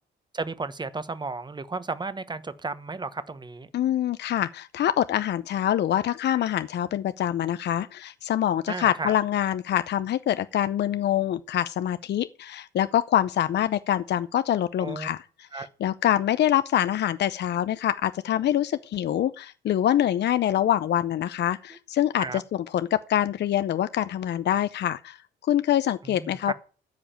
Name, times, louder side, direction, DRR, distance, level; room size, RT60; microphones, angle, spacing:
voice 1, 0.3-3.7 8.7-9.1 14.8-15.1 15.5-15.7 22.2-22.4 26.0-26.5, right 3 dB, 20° right, 1.2 m, -33 dB
voice 2, 3.7-26.5, left 11 dB, 60° left, 0.6 m, -25 dB
13.5 x 5.0 x 8.9 m
cardioid pair, 90°, 20 cm